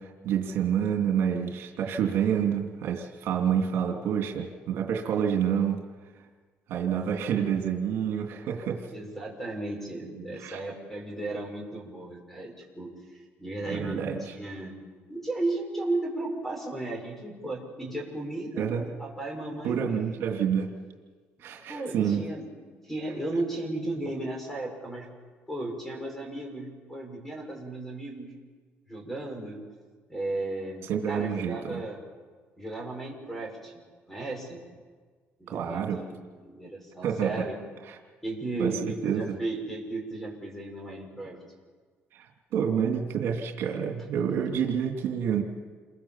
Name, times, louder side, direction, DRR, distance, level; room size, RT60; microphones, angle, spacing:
voice 1, 0.0-5.8 6.7-8.9 10.4-10.6 13.7-14.3 18.6-18.9 19.6-20.7 21.4-22.3 30.9-31.8 35.5-36.0 37.0-37.4 37.9-38.0 38.6-39.4 42.1-45.4, right 8 dB, 70° right, 2 dB, 2.8 m, -28 dB
voice 2, 8.9-14.7 15.1-18.7 19.0-20.2 21.7-22.5 22.8-25.1 25.5-28.3 28.9-29.6 30.1-32.0 32.6-33.7 34.1-34.6 35.4-37.5 38.2-41.4, right 2 dB, 5° left, 2 dB, 6.1 m, -35 dB
28.5 x 22.5 x 7.4 m, 1.5 s
cardioid pair, 140°, 4 cm